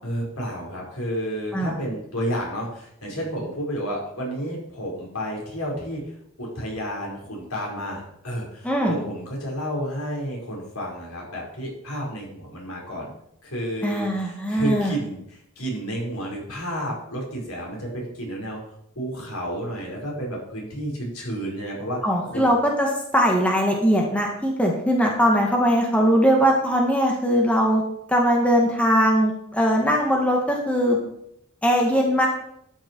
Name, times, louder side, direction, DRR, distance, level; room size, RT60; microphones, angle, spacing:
voice 1, 0.0-6.1 6.4-13.1 13.4-18.6 18.9-22.5, equal, 85° left, -1 dB, 4.9 m, -31 dB
voice 2, 13.8-14.9 22.0-22.9 23.1-27.8 28.1-31.0 31.6-32.3, equal, 5° left, -1 dB, 2.0 m, -20 dB
12.5 x 9.4 x 4.7 m, 0.73 s
head